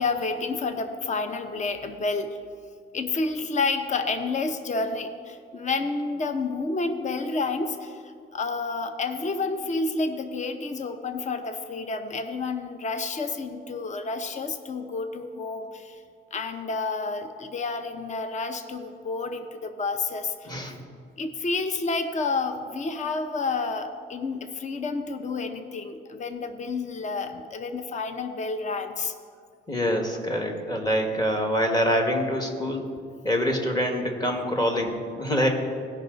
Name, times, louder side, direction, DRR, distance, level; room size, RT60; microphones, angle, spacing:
voice 1, 0.0-2.4 2.9-16.0 16.3-20.5 21.2-29.1, left 3 dB, 35° left, 8 dB, 0.8 m, -30 dB
voice 2, 29.7-32.9 33.2-35.5, equal, 20° left, 2 dB, 1.8 m, -25 dB
17.0 x 5.8 x 3.9 m, 2.2 s
cardioid pair, 90°, 20 cm